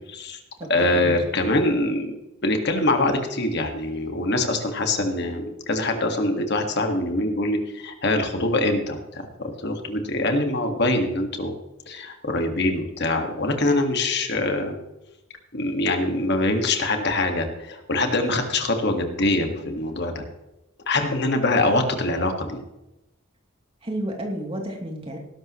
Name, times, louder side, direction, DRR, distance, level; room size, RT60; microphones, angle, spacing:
voice 1, 0.1-0.4 0.7-11.5 11.9-14.7 15.5-20.2 20.9-22.6, left 2 dB, 55° left, 4 dB, 1.9 m, -24 dB
voice 2, 0.6-1.2 23.8-25.2, right 1 dB, 25° right, 0 dB, 2.8 m, -31 dB
19.0 x 11.5 x 3.1 m, 0.93 s
head